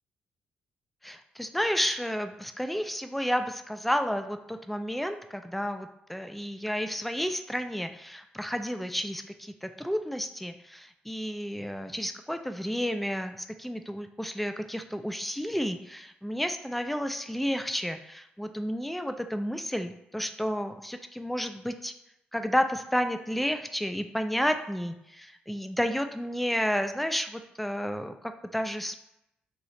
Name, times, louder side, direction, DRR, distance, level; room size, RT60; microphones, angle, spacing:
voice 1, 1.0-21.9 22.3-29.0, equal, 5° left, 8 dB, 0.3 m, -31 dB
3.1 x 2.9 x 2.6 m, 0.83 s
hypercardioid pair, 40°, 4 cm